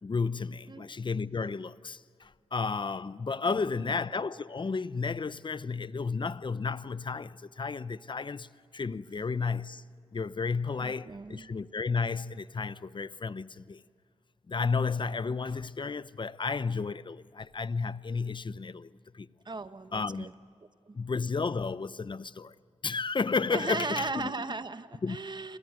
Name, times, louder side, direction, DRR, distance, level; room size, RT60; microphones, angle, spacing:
voice 1, 0.0-9.8 10.1-13.8 14.5-19.3 19.9-20.3 20.9-22.5 22.8-24.5 25.0-25.2, left 4 dB, 40° left, 0.8 m, -32 dB
voice 2, 3.4-4.0 10.8-11.5 19.4-20.3 20.9-21.0 23.5-25.6, right 3 dB, 40° right, 1.2 m, -37 dB
30.0 x 23.0 x 7.8 m
cardioid pair, 50°, 12 cm